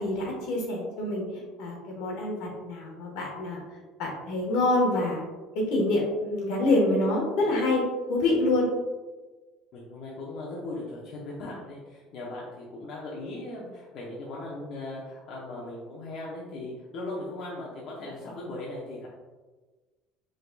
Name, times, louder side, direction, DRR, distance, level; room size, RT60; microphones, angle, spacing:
voice 1, 0.0-3.6 4.0-5.2 5.5-7.8 8.1-8.7, left 2 dB, 75° left, -1 dB, 1.4 m, -26 dB
voice 2, 9.7-19.1, left 2 dB, 55° left, -5 dB, 0.9 m, -38 dB
5.0 x 4.0 x 2.3 m, 1.3 s
cardioid pair, 145°, 0 cm